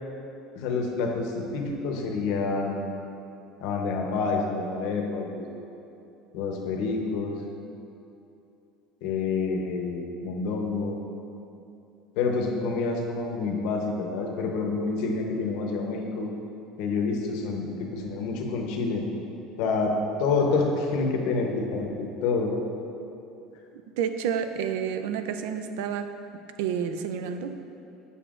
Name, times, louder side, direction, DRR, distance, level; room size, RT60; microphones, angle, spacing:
voice 1, 0.5-2.9 3.6-5.5 6.3-7.3 9.0-11.0 12.2-16.3 16.8-19.0 19.6-19.9 20.2-22.5, left 4 dB, 60° left, 1 dB, 0.8 m, -28 dB
voice 2, 24.0-26.1 26.6-27.6, right 7 dB, 80° right, 9 dB, 0.3 m, -29 dB
7.0 x 6.7 x 2.4 m, 2.8 s
cardioid pair, 175°, 0 cm